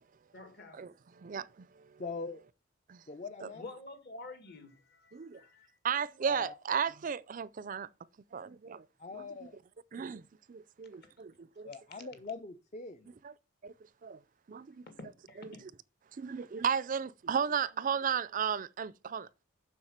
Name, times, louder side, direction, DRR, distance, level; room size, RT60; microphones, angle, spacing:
voice 1, 0.3-0.9 3.5-5.8 10.9-11.1 15.0-15.6, left 2 dB, 50° left, 2.0 m, -49 dB
voice 2, 1.2-1.7 2.9-3.0 3.4-3.5 5.1-5.4 5.8-7.9 8.3-8.8 9.1-9.3 9.9-10.2 10.5-11.7 13.2-13.3 13.6-13.7 14.0-14.2 14.5-14.8 16.2-19.3, right 7 dB, 40° right, 0.4 m, -34 dB
voice 3, 2.0-2.4 3.1-3.6 6.3-6.5 9.0-9.6 11.6-13.1, left 4 dB, 35° left, 0.5 m, -42 dB
7.3 x 6.2 x 6.5 m
head